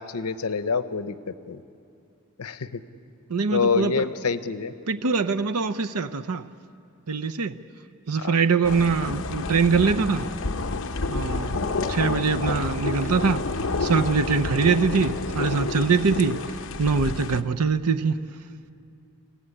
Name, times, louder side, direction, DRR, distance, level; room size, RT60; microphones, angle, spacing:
voice 1, 0.0-1.6 2.4-2.8 3.5-4.7 8.2-8.4 9.1-9.2 11.5-11.8, left 5 dB, 90° left, 0.8 m, -27 dB
voice 2, 3.3-4.0 4.9-6.4 7.1-7.5 8.1-10.3 11.1-11.6 11.9-13.4 13.8-16.4 16.8-18.2, right 5 dB, 90° right, 0.7 m, -23 dB
sound 1, 8.6-17.4, left 3 dB, 60° left, 0.8 m, -29 dB
25.5 x 15.5 x 9.9 m
head